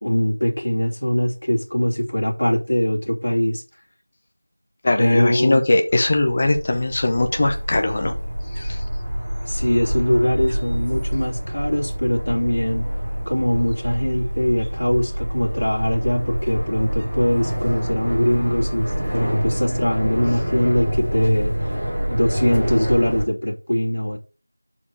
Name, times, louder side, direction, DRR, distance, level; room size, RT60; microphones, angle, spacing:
voice 1, 0.0-3.6 5.0-5.6 9.5-12.9 13.3-21.7 22.1-24.2, left 1 dB, 60° left, 2.6 m, -22 dB
voice 2, 4.8-8.1 8.5-8.8, left 2 dB, 20° left, 0.8 m, -20 dB
sound 1, 5.9-23.2, equal, 5° right, 1.7 m, -26 dB
7.2 x 4.5 x 4.8 m
figure-of-eight pair, 175°, 0 cm